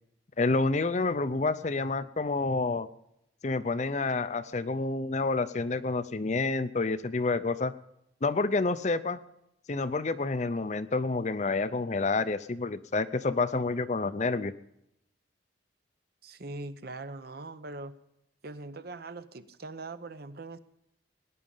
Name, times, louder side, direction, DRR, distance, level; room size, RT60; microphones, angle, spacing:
voice 1, 0.4-2.9 3.4-7.7 8.2-9.2 9.7-14.5, left 3 dB, 35° left, 13 dB, 0.5 m, -28 dB
voice 2, 16.2-18.0 18.4-20.6, right 2 dB, 50° right, 12 dB, 0.7 m, -41 dB
18.0 x 10.5 x 5.5 m, 0.81 s
head